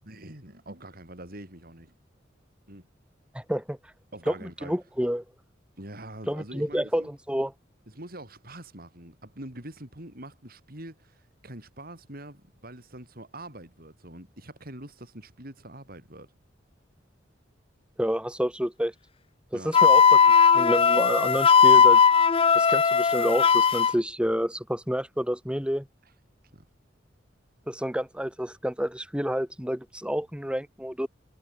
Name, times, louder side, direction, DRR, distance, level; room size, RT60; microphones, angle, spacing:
voice 1, 0.1-1.9 2.7-2.9 4.1-4.7 5.8-7.2 7.9-16.3 19.5-19.7 26.5-26.6, right 1 dB, 55° right, 7.8 m, -44 dB
voice 2, 3.3-3.8 4.3-5.2 6.3-7.5 18.0-18.9 19.5-20.2 20.5-22.0 22.5-25.9 27.7-31.1, equal, 5° right, 4.3 m, -29 dB
Wind instrument woodwind instrument, 19.7-23.9, left 6 dB, 30° left, 0.5 m, -18 dB
head